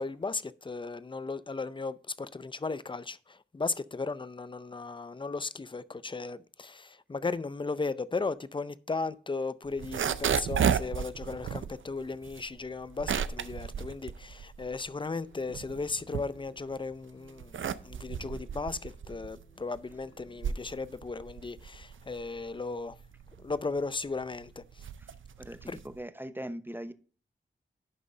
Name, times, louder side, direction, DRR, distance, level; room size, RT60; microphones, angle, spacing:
voice 1, 0.0-23.0 23.4-24.9 25.7-25.8, left 3 dB, 25° left, 0.5 m, -36 dB
sound 1, 9.7-15.0 15.3-16.8 17.2-26.0, right 8 dB, 80° right, 0.5 m, -34 dB
guitar arpeggio C, 14.7-20.5, equal, 60° left, 3.2 m, -62 dB
voice 2, 25.4-26.9, right 1 dB, 10° right, 0.8 m, -40 dB
11.0 x 3.7 x 5.4 m
cardioid pair, 45°, 20 cm